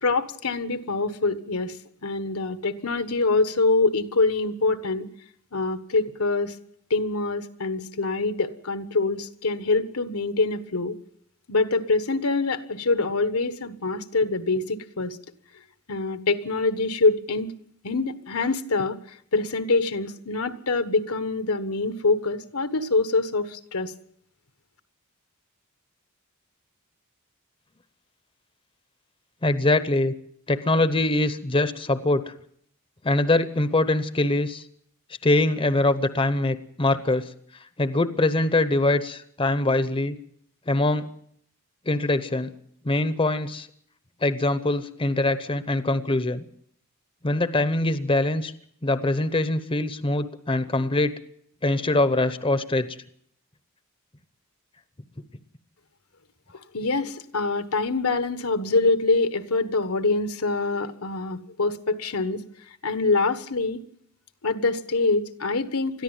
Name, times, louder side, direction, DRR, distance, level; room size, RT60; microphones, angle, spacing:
voice 1, 0.0-5.1 5.5-6.5 6.9-10.9 11.5-15.2 15.9-17.5 17.8-23.9 56.7-62.4 62.8-63.8 64.4-66.0, left 3 dB, 80° left, 10 dB, 1.4 m, -25 dB
voice 2, 29.4-30.1 30.5-32.3 33.0-34.6 35.2-37.2 37.8-40.2 40.7-41.1 41.9-42.5 42.8-43.7 44.2-46.4 47.2-48.5 48.8-51.1 51.6-53.0, left 2 dB, 25° left, 13 dB, 0.9 m, -23 dB
21.5 x 14.0 x 9.1 m, 0.68 s
head